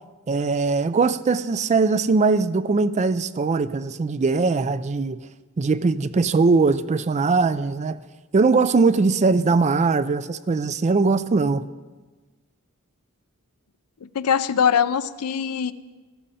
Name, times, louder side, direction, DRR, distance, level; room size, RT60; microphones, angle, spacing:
voice 1, 0.3-5.2 5.6-8.0 8.3-11.6, right 4 dB, 30° right, 15 dB, 0.4 m, -20 dB
voice 2, 14.0-15.7, left 7 dB, 80° left, 14 dB, 0.5 m, -22 dB
13.5 x 12.5 x 4.2 m, 1.3 s
head